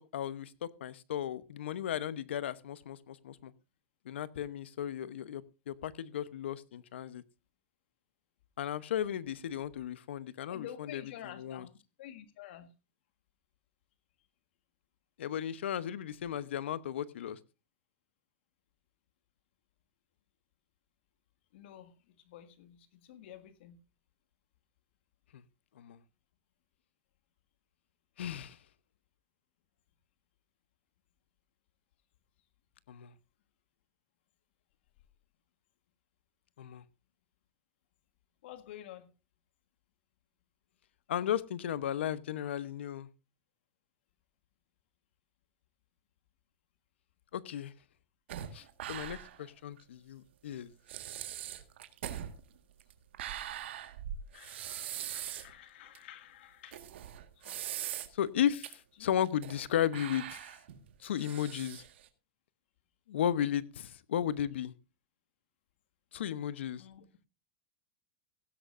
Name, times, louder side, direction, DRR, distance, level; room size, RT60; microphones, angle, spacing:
voice 1, 0.1-3.5 4.0-7.2 8.6-11.0 11.4-11.6 15.2-17.4 25.8-26.0 28.2-28.6 32.9-33.1 36.6-36.8 41.1-43.1 47.3-47.7 48.5-50.7 58.1-60.4 61.0-61.8 63.1-64.7 66.1-66.8, left 10 dB, 85° left, 1.0 m, -35 dB
voice 2, 10.5-11.7 12.0-12.7 21.5-23.8 38.4-39.1 54.3-56.8 57.3-57.6 59.0-59.1 66.8-67.1, left 11 dB, 70° left, 1.6 m, -50 dB
sound 1, 48.3-49.5 49.8-49.9 50.5-50.6 50.9-55.5 55.9-56.0 56.7-58.3 58.6-58.7 59.2-59.7 59.9-62.1, right 11 dB, 80° right, 1.7 m, -41 dB
16.5 x 13.0 x 2.6 m
supercardioid pair, 125°, 6 cm